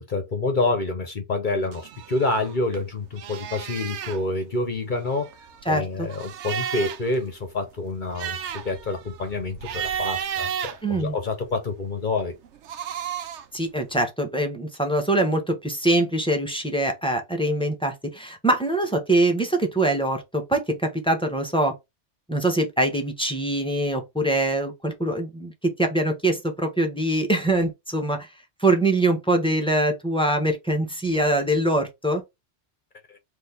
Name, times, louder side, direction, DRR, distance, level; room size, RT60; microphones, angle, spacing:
voice 1, 0.0-5.3 5.7-12.3 33.1-33.2, left 2 dB, 45° left, 1.0 m, -27 dB
sound 1, 1.7-2.8 3.1-4.2 5.0-7.2 7.5-7.6 7.9-11.5 12.4-13.6, right 8 dB, 80° right, 0.9 m, -33 dB
voice 2, 5.7-6.1 10.8-11.2 13.5-21.7 22.3-28.3 28.6-32.2, right 1 dB, 5° left, 1.1 m, -23 dB
4.2 x 2.8 x 3.5 m
omnidirectional pair, 1.2 m